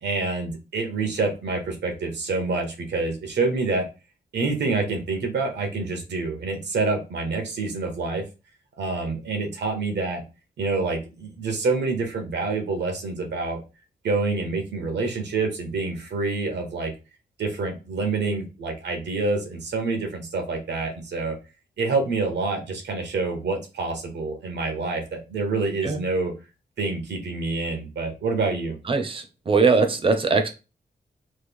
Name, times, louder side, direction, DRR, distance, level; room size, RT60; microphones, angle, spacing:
voice 1, 0.0-3.9 4.3-8.2 8.8-10.2 10.6-13.6 14.0-16.9 17.4-21.3 21.8-26.3 26.8-28.7, right 3 dB, 85° right, 4 dB, 0.8 m, -27 dB
voice 2, 28.9-30.5, right 4 dB, 30° right, 6 dB, 0.5 m, -21 dB
3.1 x 2.2 x 3.4 m, 0.30 s
wide cardioid pair, 170°, 17 cm